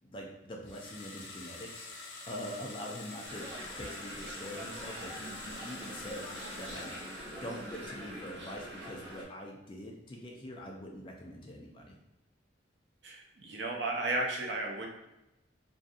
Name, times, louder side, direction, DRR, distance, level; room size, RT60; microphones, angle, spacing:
voice 1, 0.0-1.9 2.3-6.3 6.6-6.9 7.4-12.0, equal, 25° left, 0 dB, 0.3 m, -44 dB
sound 1, 0.6-8.0, left 3 dB, 85° left, 0.5 m, -47 dB
sound 2, 3.2-9.2, right 1 dB, 90° right, 0.9 m, -44 dB
voice 2, 13.0-14.9, right 2 dB, 65° right, 0 dB, 0.5 m, -34 dB
2.6 x 2.5 x 2.3 m, 0.92 s
head